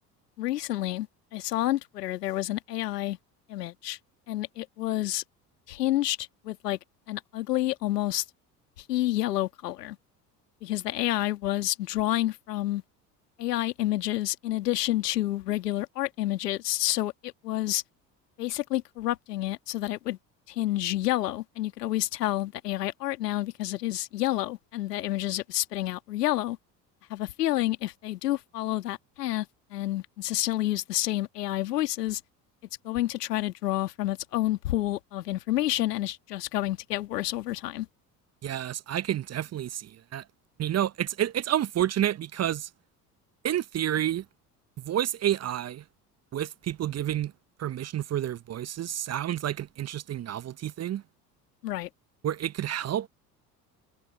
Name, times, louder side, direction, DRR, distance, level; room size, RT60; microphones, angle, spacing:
voice 1, 0.4-1.1 1.3-3.2 3.5-4.0 4.3-5.2 5.7-6.8 7.1-8.2 8.9-10.0 10.6-12.8 13.4-17.8 18.4-20.2 20.5-26.6 27.1-32.2 32.8-37.9 51.6-51.9, left 15 dB, 80° left, 2.0 m, -29 dB
voice 2, 38.4-40.2 40.6-42.7 43.4-44.2 44.8-45.8 46.3-47.3 47.6-51.0 52.2-53.1, right 11 dB, 35° right, 0.8 m, -29 dB
figure-of-eight pair, 60°, 47 cm